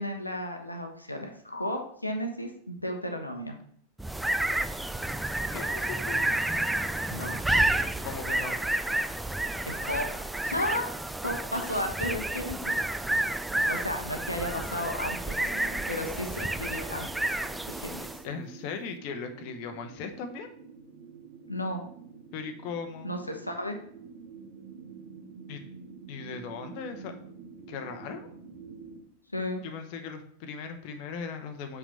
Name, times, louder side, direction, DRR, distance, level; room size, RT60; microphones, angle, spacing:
voice 1, 0.0-3.6 7.1-7.4 9.6-10.9 11.2-12.7 13.7-15.4 15.9-17.1 17.7-18.0 21.5-21.8 23.0-23.7 29.3-29.6, left 1 dB, 85° left, 4 dB, 1.0 m, -33 dB
sound 1, 4.0-18.3, right 1 dB, 5° right, 0.3 m, -30 dB
voice 2, 5.5-6.2 8.0-8.6 18.2-20.5 22.3-23.1 25.5-25.7 26.1-27.2 27.7-28.3 29.6-31.8, left 5 dB, 45° left, 6 dB, 0.9 m, -38 dB
sound 2, 12.1-29.0, right 5 dB, 45° right, 1.3 m, -49 dB
sound 3, 14.9-19.5 19.8-20.1, right 2 dB, 80° right, 1.8 m, -50 dB
6.0 x 4.8 x 5.5 m, 0.64 s
figure-of-eight pair, 90°, 0 cm